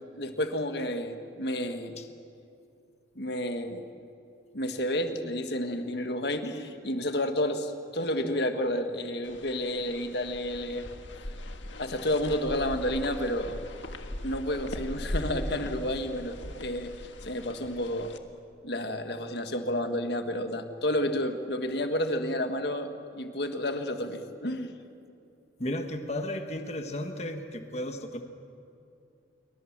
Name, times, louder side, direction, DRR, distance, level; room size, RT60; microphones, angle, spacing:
voice 1, 0.2-2.0 3.2-3.8 4.5-10.9 11.8-13.6 14.2-18.1 18.6-24.7, left 1 dB, 60° left, 7 dB, 1.7 m, -31 dB
sound 1, 9.2-18.2, left 1 dB, 80° left, 1.7 m, -39 dB
voice 2, 25.6-28.2, left 1 dB, 35° left, 6 dB, 1.4 m, -34 dB
28.0 x 23.5 x 7.4 m, 2.6 s
head